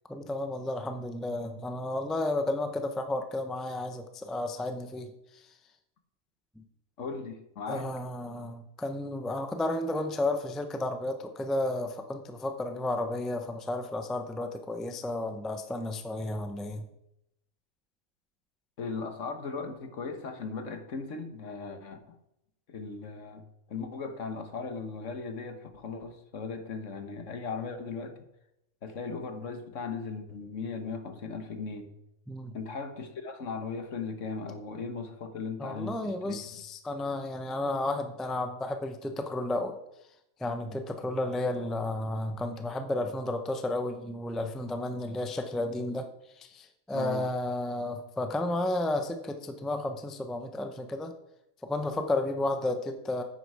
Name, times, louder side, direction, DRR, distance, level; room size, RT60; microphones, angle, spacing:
voice 1, 0.1-5.5 6.6-6.7 7.7-16.9 32.3-32.6 35.6-39.8 40.4-46.1 46.3-51.1 51.6-53.2, left 2 dB, ahead, 7 dB, 0.6 m, -32 dB
voice 2, 7.0-7.9 18.8-22.1 22.7-23.4 23.7-28.2 28.8-31.9 32.5-36.5 46.9-47.3, left 4 dB, 65° left, 7 dB, 1.5 m, -37 dB
9.8 x 8.6 x 4.8 m, 0.82 s
omnidirectional pair, 1.4 m